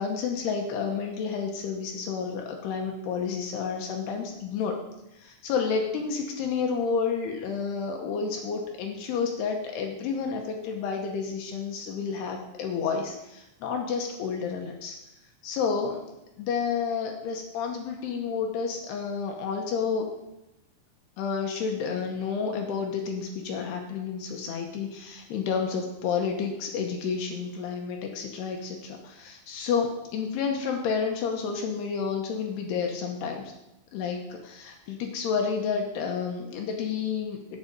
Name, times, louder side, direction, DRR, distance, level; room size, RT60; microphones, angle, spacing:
voice 1, 0.0-4.8 5.1-15.0 15.4-16.0 16.4-20.1 21.2-33.5 33.9-37.4, left 6 dB, 80° left, 2 dB, 2.5 m, -30 dB
8.4 x 7.7 x 6.7 m, 0.90 s
omnidirectional pair, 5.8 m